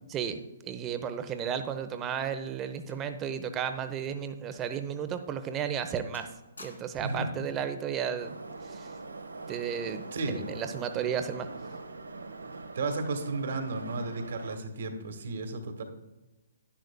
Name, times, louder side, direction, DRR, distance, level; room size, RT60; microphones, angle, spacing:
voice 1, 0.1-6.3 6.6-8.3 8.7-8.9 9.5-10.0 10.3-11.5, right 8 dB, 20° right, 8 dB, 0.7 m, -33 dB
sound 1, 2.8-3.9 4.2-4.4 5.0-5.2 5.6-5.9 6.1-7.2 8.2-8.5, left 2 dB, 85° left, 1.7 m, -54 dB
voice 2, 7.0-7.3 10.1-10.4 12.7-15.8, right 3 dB, 60° right, 6 dB, 1.5 m, -33 dB
Subway metro underground, 8.2-14.6, right 3 dB, 85° right, 1.0 m, -43 dB
11.0 x 10.5 x 2.2 m, 1.1 s
figure-of-eight pair, 130°, 0 cm